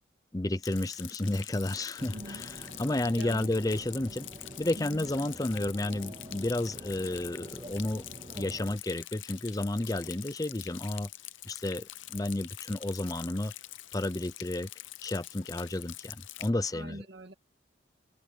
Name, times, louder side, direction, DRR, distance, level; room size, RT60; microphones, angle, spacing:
voice 1, 0.3-4.3 4.6-8.0 8.4-11.1 11.4-13.5 13.9-14.7 15.0-17.0, left 1 dB, 20° left, 0.6 m, -32 dB
Rain, 0.6-16.5, left 15 dB, 85° left, 0.7 m, -45 dB
sound 1, 2.0-8.8, right 1 dB, 30° right, 1.8 m, -47 dB
voice 2, 2.1-2.6 3.2-3.6 4.7-5.1 16.7-17.3, right 1 dB, 60° right, 2.3 m, -44 dB
head